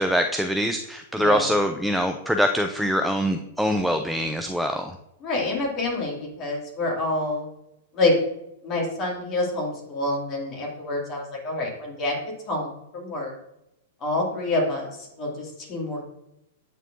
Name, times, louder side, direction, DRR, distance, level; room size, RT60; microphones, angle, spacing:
voice 1, 0.0-5.0, equal, ahead, 6 dB, 0.4 m, -24 dB
voice 2, 1.1-1.5 5.2-7.5 7.9-8.1 8.6-12.2 12.5-13.3 14.0-16.0, left 2 dB, 35° left, -2 dB, 2.2 m, -27 dB
8.8 x 4.3 x 2.5 m, 0.86 s
figure-of-eight pair, 100°, 0 cm